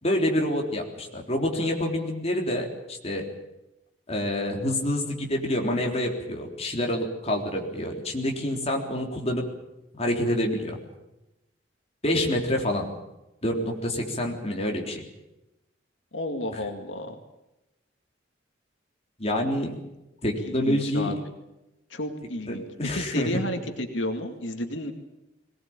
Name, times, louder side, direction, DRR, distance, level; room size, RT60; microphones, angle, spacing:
voice 1, 0.0-3.3 4.1-9.4 10.0-10.8 12.0-12.9 13.4-15.0 19.2-19.7 20.2-21.1 22.5-23.4, left 1 dB, 35° left, 1 dB, 3.7 m, -27 dB
voice 2, 16.1-17.2 20.4-21.2 21.9-22.6 22.9-24.9, left 1 dB, 85° left, 5 dB, 2.2 m, -32 dB
22.0 x 19.0 x 8.8 m, 0.95 s
head